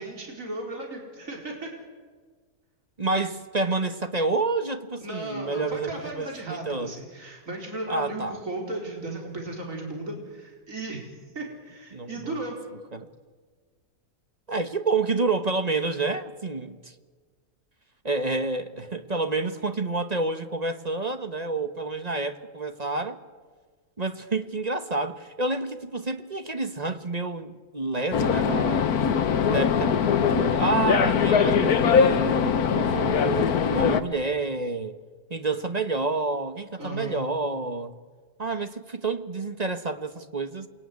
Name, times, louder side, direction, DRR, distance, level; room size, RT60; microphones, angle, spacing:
voice 1, 0.0-1.7 5.0-11.0 11.3-12.6 36.8-37.2, right 2 dB, 60° right, 4.9 m, -35 dB
voice 2, 3.0-6.9 7.9-8.4 11.9-12.3 12.9-13.1 14.5-16.9 18.0-23.2 24.0-29.0 29.5-30.0 30.3-35.0 35.3-37.9 38.4-40.7, right 3 dB, 30° right, 1.2 m, -29 dB
sound 1, 28.1-34.0, left 6 dB, 90° left, 1.6 m, -22 dB
28.0 x 21.0 x 9.6 m
omnidirectional pair, 1.5 m